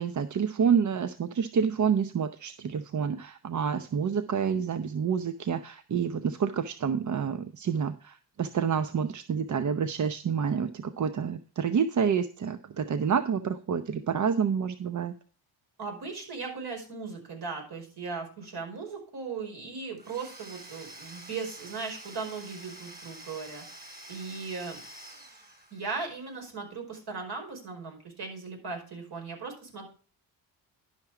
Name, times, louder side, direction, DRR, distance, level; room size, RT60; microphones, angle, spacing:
voice 1, 0.0-15.1, right 7 dB, 40° right, 11 dB, 0.8 m, -28 dB
voice 2, 15.8-23.6 24.1-24.8 25.7-29.9, right 4 dB, 60° right, 2 dB, 5.0 m, -38 dB
Domestic sounds home sounds / Tools, 20.0-26.1, right 1 dB, 20° right, 3.2 m, -48 dB
11.5 x 5.9 x 4.8 m, 0.40 s
cardioid pair, 70°, 44 cm